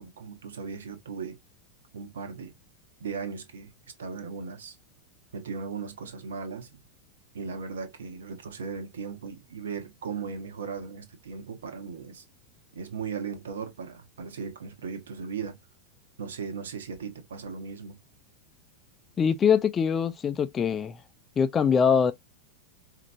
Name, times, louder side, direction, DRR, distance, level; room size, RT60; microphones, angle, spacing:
voice 1, 0.0-1.4 1.9-2.5 3.0-3.7 4.0-4.8 5.3-6.8 7.3-12.2 12.7-15.6 16.2-18.0, right 5 dB, 65° right, 1.2 m, -37 dB
voice 2, 19.2-21.0 21.4-22.1, left 7 dB, 20° left, 0.5 m, -23 dB
5.0 x 2.9 x 2.6 m
figure-of-eight pair, 90°, 0 cm